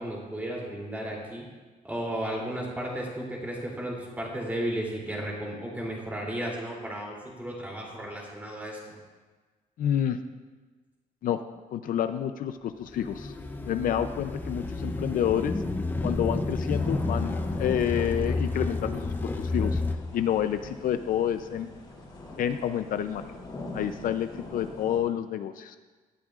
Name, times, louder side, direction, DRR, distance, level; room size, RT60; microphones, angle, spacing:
voice 1, 0.0-1.4 1.8-9.0, right 1 dB, 10° right, -3 dB, 3.0 m, -34 dB
voice 2, 9.8-10.2 11.2-11.4 11.7-13.3 13.6-15.5 16.0-19.8 20.1-21.7 22.4-23.3 23.7-25.8, left 10 dB, 65° left, 9 dB, 0.5 m, -29 dB
sound 1, 12.9-20.0, left 3 dB, 15° left, 0.6 m, -30 dB
sound 2, 16.7-25.0, left 1 dB, 30° left, 3.1 m, -42 dB
18.5 x 12.5 x 2.5 m, 1.3 s
cardioid pair, 170°, 15 cm